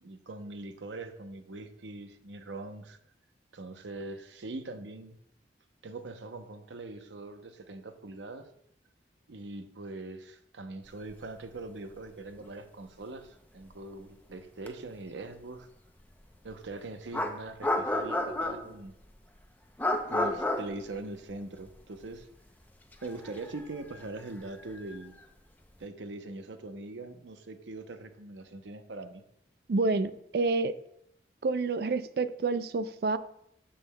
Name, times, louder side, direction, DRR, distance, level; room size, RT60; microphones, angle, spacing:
voice 1, 0.0-3.0 3.5-5.2 5.8-8.5 9.3-15.7 16.4-18.9 20.1-22.3 23.0-25.1 25.8-29.2, right 2 dB, 90° right, 8 dB, 0.7 m, -42 dB
sound 1, 12.0-12.1 12.3-12.5 14.7-14.8 16.5-16.6 17.1-18.9 19.8-21.8 22.0-22.2 22.9-25.2, left 1 dB, 10° left, 0.5 m, -32 dB
voice 2, 29.7-30.8 31.4-33.2, right 3 dB, 60° right, 13 dB, 0.3 m, -28 dB
13.0 x 5.6 x 2.2 m, 0.75 s
head